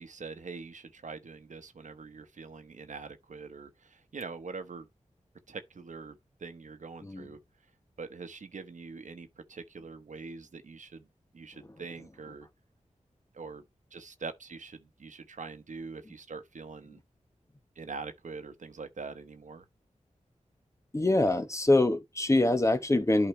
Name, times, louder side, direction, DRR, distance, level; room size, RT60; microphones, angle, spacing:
voice 1, 0.0-4.9 5.5-7.4 8.0-11.1 11.3-12.5 13.3-13.6 13.9-17.0 17.7-19.6, right 4 dB, 75° right, 1.2 m, -43 dB
voice 2, 20.9-23.3, left 2 dB, 25° left, 1.0 m, -24 dB
11.5 x 4.9 x 3.3 m
wide cardioid pair, 95°, 13 cm